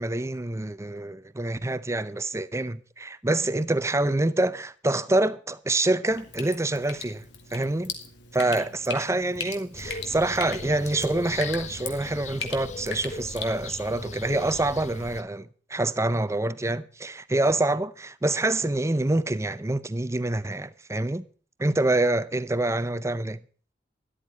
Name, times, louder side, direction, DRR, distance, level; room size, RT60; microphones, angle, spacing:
voice 1, 0.0-7.2 7.5-7.9 8.3-21.2 21.6-23.4, right 2 dB, 15° right, 0.6 m, -26 dB
Drip, 6.1-13.5, left 5 dB, 70° left, 2.3 m, -39 dB
sound 1, 9.7-15.2, left 3 dB, 40° left, 0.6 m, -39 dB
13.0 x 11.5 x 4.1 m
head